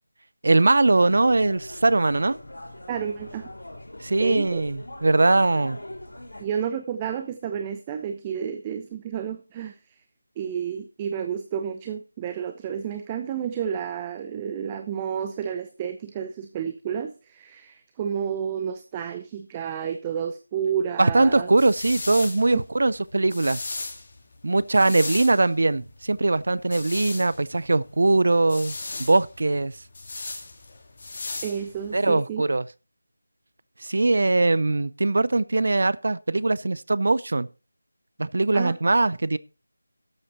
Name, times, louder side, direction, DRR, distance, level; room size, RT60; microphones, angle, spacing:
voice 1, 0.4-2.4 4.0-5.8 21.0-23.6 24.4-29.7 31.9-32.6 33.8-37.5 38.2-39.4, right 2 dB, 60° right, 0.5 m, -21 dB
sound 1, 0.9-6.4, left 1 dB, 70° left, 3.4 m, -41 dB
voice 2, 2.9-3.5 4.2-4.6 6.4-10.0 10.4-21.5 31.4-32.4 38.5-38.7, right 8 dB, 15° right, 0.6 m, -31 dB
sound 2, 21.1-32.1, left 3 dB, 40° left, 2.0 m, -37 dB
12.5 x 8.1 x 4.1 m
figure-of-eight pair, 165°, 0 cm